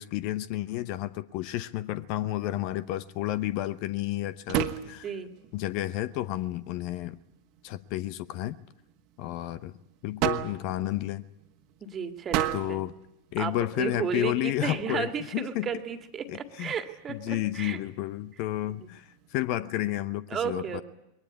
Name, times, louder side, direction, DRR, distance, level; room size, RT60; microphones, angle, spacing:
voice 1, 0.0-5.1 5.5-7.2 7.6-8.6 9.2-9.7 10.0-11.2 12.5-12.9 13.3-15.7 16.3-16.7 17.1-20.8, left 15 dB, 45° left, 0.8 m, -31 dB
sound 1, 2.5-19.4, right 12 dB, 40° right, 1.6 m, -38 dB
voice 2, 4.8-5.3 11.8-12.8 13.4-17.8 18.6-18.9 20.3-20.8, right 7 dB, 25° right, 2.0 m, -33 dB
22.0 x 19.0 x 9.6 m
figure-of-eight pair, 90°, 0 cm